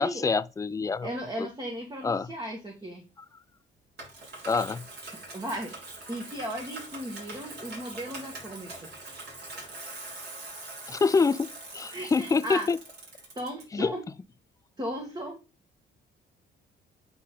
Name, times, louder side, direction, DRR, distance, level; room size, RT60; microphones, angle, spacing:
voice 1, 0.0-1.1 1.4-1.5 2.0-2.3 4.4-4.8 10.9-11.5 11.7-12.8 13.7-13.9, left 4 dB, 15° left, 0.3 m, -26 dB
voice 2, 1.0-3.1 5.3-5.7 6.1-8.7 9.0-9.5 11.9-12.7 13.4-14.0 14.8-15.4, equal, 20° right, 1.7 m, -36 dB
Bicycle, 4.0-13.6, right 2 dB, 55° right, 3.7 m, -43 dB
8.2 x 3.9 x 3.7 m
cardioid pair, 90°, 20 cm